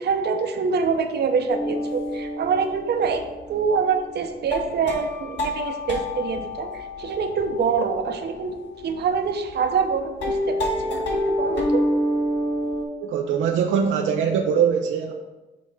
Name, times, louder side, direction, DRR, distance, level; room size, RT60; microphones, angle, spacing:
voice 1, 0.0-11.8, right 5 dB, 55° right, 6 dB, 0.8 m, -25 dB
sound 1, 1.5-9.9 10.2-12.8, left 1 dB, 65° left, 1.9 m, -28 dB
voice 2, 13.0-15.1, right 7 dB, 80° right, 2 dB, 0.6 m, -22 dB
6.5 x 3.6 x 5.5 m, 1.1 s
cardioid pair, 90°, 20 cm